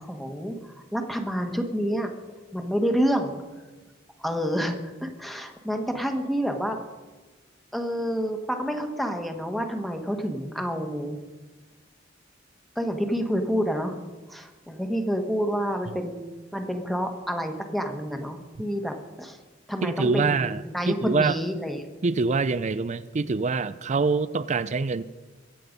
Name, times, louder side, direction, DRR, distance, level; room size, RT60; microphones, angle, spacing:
voice 1, 0.0-2.1 2.5-3.4 4.2-6.8 7.7-11.2 12.7-14.0 14.3-16.2 16.5-19.4 19.7-21.8, equal, ahead, 4 dB, 1.3 m, -28 dB
voice 2, 19.8-21.4 22.0-25.0, right 4 dB, 40° right, 15 dB, 0.4 m, -25 dB
22.5 x 8.5 x 5.3 m, 1.2 s
head